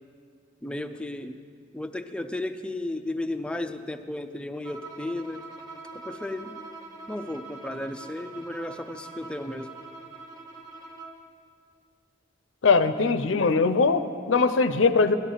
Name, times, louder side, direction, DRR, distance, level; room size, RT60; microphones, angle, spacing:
voice 1, 0.6-1.4 1.7-5.4 6.0-6.7 7.1-9.8, left 1 dB, 5° left, 7 dB, 0.4 m, -34 dB
Bowed string instrument, 4.6-11.3, right 3 dB, 20° right, 1.4 m, -43 dB
voice 2, 12.6-15.2, left 4 dB, 85° left, 11 dB, 0.6 m, -21 dB
16.5 x 12.5 x 3.9 m, 2.2 s
head